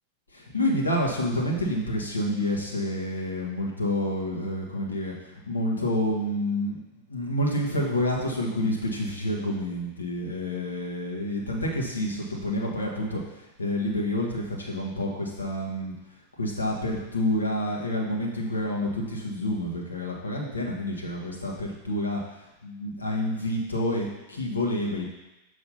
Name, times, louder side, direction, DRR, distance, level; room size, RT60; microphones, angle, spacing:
voice 1, 0.3-6.8 7.1-15.9 16.4-25.0, left 1 dB, 80° left, -2 dB, 1.3 m, -28 dB
6.8 x 3.2 x 5.6 m, 0.99 s
figure-of-eight pair, 90°, 0 cm